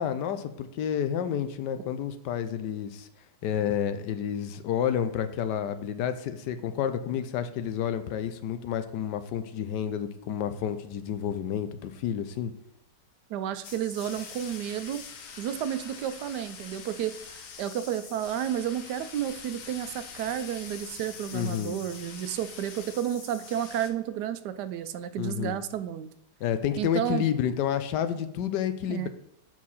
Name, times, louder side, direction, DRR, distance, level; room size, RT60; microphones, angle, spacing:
voice 1, 0.0-3.1 3.4-12.5 21.3-21.8 25.2-25.6 26.4-29.1, left 9 dB, 85° left, 10 dB, 1.3 m, -30 dB
voice 2, 13.3-15.0 15.4-26.1 26.8-27.2 28.9-29.1, right 10 dB, 80° right, 11 dB, 1.2 m, -31 dB
sound 1, 13.6-23.9, left 6 dB, 60° left, 1.1 m, -44 dB
7.4 x 4.7 x 4.1 m, 0.81 s
omnidirectional pair, 1.8 m